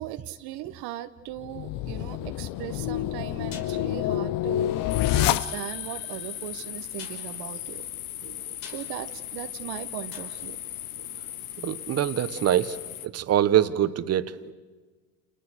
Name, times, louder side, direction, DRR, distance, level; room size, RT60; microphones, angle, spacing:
voice 1, 0.0-7.9 8.6-10.6, right 14 dB, 60° right, 9 dB, 1.3 m, -38 dB
sound 1, 1.4-6.0, left 13 dB, 50° left, 0.9 m, -27 dB
sound 2, 3.5-12.0 12.2-12.3, left 6 dB, 70° left, 5.1 m, -50 dB
sound 3, 4.9-13.1, left 12 dB, 90° left, 1.1 m, -38 dB
voice 2, 11.6-12.8 13.0-14.5, right 11 dB, 35° right, 11 dB, 1.3 m, -24 dB
30.0 x 28.5 x 6.4 m, 1.3 s
hypercardioid pair, 95°, 42 cm